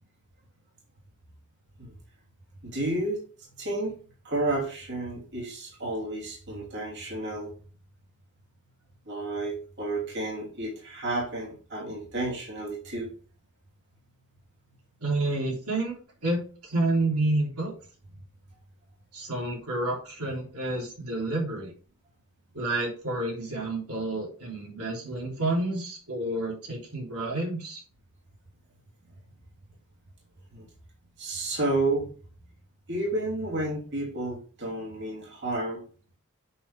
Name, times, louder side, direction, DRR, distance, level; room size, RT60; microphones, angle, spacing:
voice 1, 2.6-3.2 3.6-3.9 4.2-7.5 9.1-13.1 30.5-30.7 31.2-32.1 32.9-35.8, right 2 dB, 50° right, -3 dB, 2.9 m, -31 dB
voice 2, 15.0-16.0 16.2-17.7 19.1-21.7 22.5-27.8, right 2 dB, 85° right, -2 dB, 3.4 m, -29 dB
8.3 x 5.8 x 3.5 m, 0.39 s
head